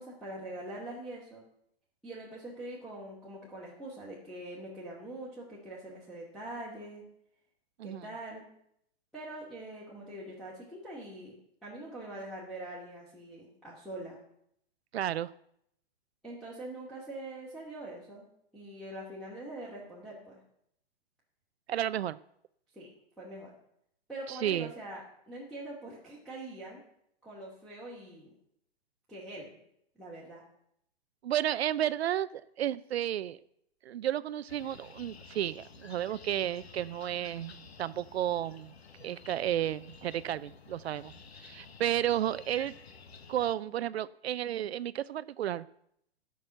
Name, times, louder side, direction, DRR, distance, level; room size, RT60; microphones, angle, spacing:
voice 1, 0.0-1.4 2.0-7.0 7.8-8.4 9.1-11.3 11.6-14.2 16.2-18.2 18.5-20.4 22.7-22.9 23.2-23.5 24.1-25.0 25.3-26.8 27.2-28.3 29.1-29.5 30.0-30.4, right 1 dB, ahead, -7 dB, 2.5 m, -43 dB
voice 2, 14.9-15.3 21.7-22.2 24.3-24.7 31.2-33.4 33.9-38.7 39.0-41.1 41.4-42.7 43.3-45.7, right 11 dB, 80° right, 16 dB, 0.5 m, -32 dB
sound 1, 34.5-43.6, left 5 dB, 85° left, 1.3 m, -52 dB
11.5 x 6.2 x 8.9 m, 0.74 s
hypercardioid pair, 135°, 31 cm